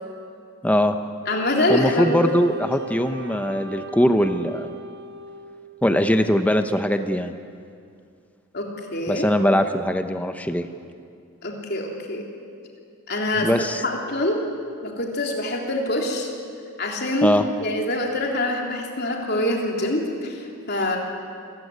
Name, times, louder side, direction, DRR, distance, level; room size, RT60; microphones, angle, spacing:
voice 1, 0.6-1.0 1.7-4.7 5.8-7.4 9.1-10.7 13.4-13.8 17.2-17.4, equal, 5° left, 8 dB, 0.9 m, -21 dB
voice 2, 1.3-2.3 8.5-9.3 11.4-12.2 13.1-13.5 13.8-14.4 14.8-16.3 16.8-21.0, left 1 dB, 50° left, 0 dB, 3.4 m, -25 dB
Wind instrument woodwind instrument, 1.3-5.9, right 2 dB, 50° right, 1.1 m, -37 dB
27.5 x 15.0 x 9.7 m, 2.4 s
head